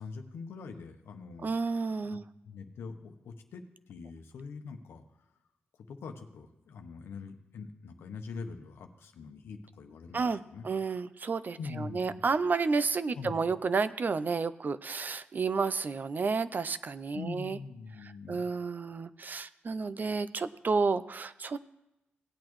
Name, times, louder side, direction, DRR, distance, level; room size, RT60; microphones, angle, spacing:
voice 1, 0.0-1.5 2.0-2.2 2.4-5.0 5.9-10.7 11.6-12.2 13.1-13.4 17.1-18.4, left 4 dB, 90° left, 5 dB, 0.9 m, -43 dB
voice 2, 1.4-2.3 10.1-17.6 18.0-21.6, right 4 dB, 50° right, 14 dB, 0.5 m, -31 dB
17.5 x 8.6 x 3.1 m, 0.95 s
cardioid pair, 60°, 4 cm